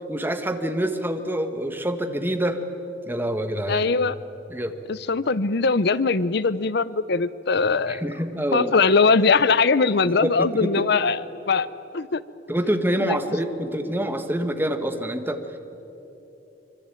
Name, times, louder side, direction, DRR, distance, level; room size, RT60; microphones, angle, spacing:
voice 1, 0.1-2.6 3.1-3.8 4.5-4.7 7.9-8.7 10.0-10.9 12.5-15.4, right 1 dB, 10° right, 7 dB, 1.6 m, -26 dB
voice 2, 3.7-4.2 4.9-8.0 8.5-11.7 11.9-12.2 13.0-13.2, left 4 dB, 60° left, 17 dB, 0.7 m, -21 dB
25.0 x 24.0 x 9.0 m, 3.0 s
head